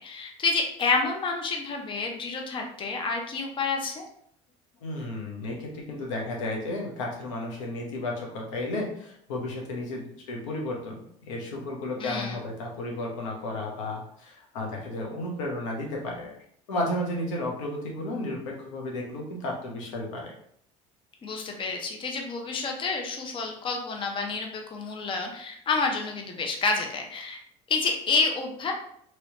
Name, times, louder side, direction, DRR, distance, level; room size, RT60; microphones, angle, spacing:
voice 1, 0.0-4.1 12.0-12.4 21.2-27.4 27.7-28.7, left 4 dB, 30° left, 2 dB, 0.6 m, -29 dB
voice 2, 4.8-16.4 16.7-20.3, left 1 dB, 85° left, -1 dB, 0.9 m, -33 dB
3.0 x 3.0 x 2.8 m, 0.68 s
supercardioid pair, 85°, 16 cm